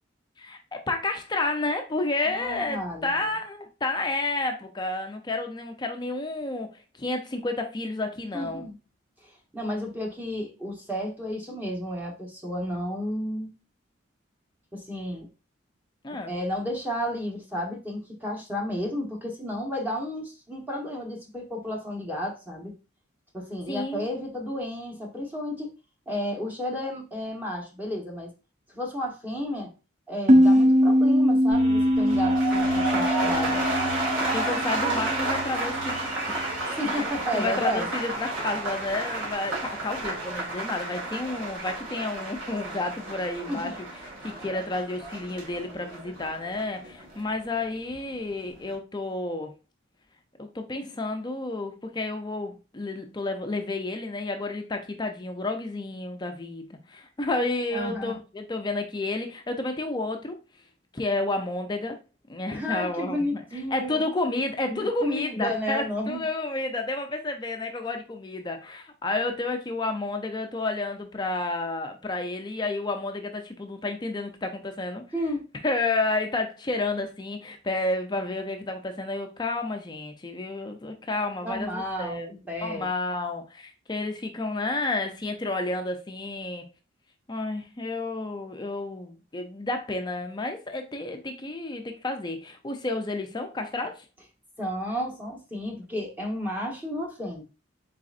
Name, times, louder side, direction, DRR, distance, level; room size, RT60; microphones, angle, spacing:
voice 1, 0.4-6.7 7.0-8.6 16.0-16.3 23.7-24.1 34.3-36.3 36.9-43.7 44.2-49.5 50.4-60.4 60.9-62.0 62.3-63.4 63.7-75.0 75.6-82.3 82.6-86.6 87.3-94.0, left 2 dB, 20° left, 0.5 m, -31 dB
voice 2, 2.2-3.3 8.3-8.7 9.2-13.5 14.7-15.3 16.3-22.7 23.3-25.7 26.1-28.3 28.7-29.7 30.1-33.7 36.8-37.9 43.5-43.7 57.7-58.1 62.5-64.0 64.7-66.2 75.1-75.4 81.4-82.9 94.6-97.4, equal, 10° right, 1.0 m, -32 dB
sound 1, 30.3-35.6, equal, 35° right, 0.5 m, -22 dB
sound 2, 31.5-36.6, right 1 dB, 55° right, 1.6 m, -38 dB
sound 3, 31.9-48.0 48.3-48.7, right 2 dB, 85° right, 1.5 m, -32 dB
4.0 x 3.8 x 2.5 m
head